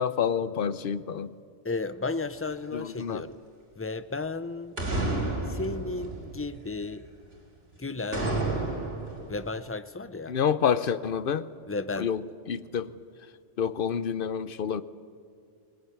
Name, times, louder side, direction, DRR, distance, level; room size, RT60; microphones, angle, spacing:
voice 1, 0.0-1.3 2.7-3.2 10.3-11.5 12.0-12.2 12.5-12.9 13.6-14.8, left 7 dB, 55° left, 0.9 m, -28 dB
voice 2, 1.6-3.4 3.8-4.8 5.5-7.1 7.8-8.4 9.3-10.4 11.7-12.1, left 3 dB, 20° left, 0.4 m, -34 dB
sound 1, 2.8-2.9 4.8-6.9 8.1-9.5, right 2 dB, 55° right, 4.2 m, -31 dB
20.5 x 19.5 x 9.4 m
omnidirectional pair, 1.2 m